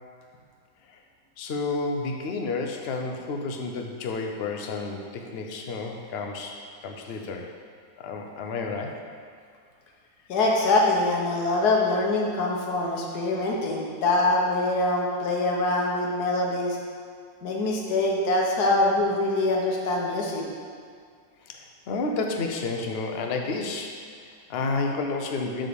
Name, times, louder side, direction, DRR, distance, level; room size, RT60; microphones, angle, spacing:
voice 1, 1.4-7.5 8.0-9.0 21.4-25.7, left 3 dB, 50° left, 2 dB, 0.8 m, -31 dB
voice 2, 10.3-16.8 17.4-20.5, left 2 dB, 70° left, -2 dB, 1.7 m, -24 dB
9.0 x 3.8 x 6.9 m, 2.2 s
omnidirectional pair, 1.7 m